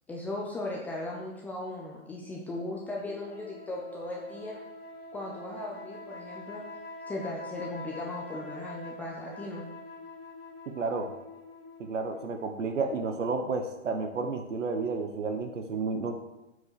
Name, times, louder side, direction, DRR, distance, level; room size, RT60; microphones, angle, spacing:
voice 1, 0.1-4.6 5.1-6.6 7.1-9.7, left 2 dB, 5° left, -3 dB, 0.5 m, -37 dB
sound 1, 3.0-12.7, left 2 dB, 25° left, 1.8 m, -45 dB
voice 2, 10.7-11.1 11.8-16.2, right 4 dB, 65° right, 6 dB, 1.2 m, -31 dB
7.9 x 5.0 x 7.4 m, 0.97 s
hypercardioid pair, 130°, 39 cm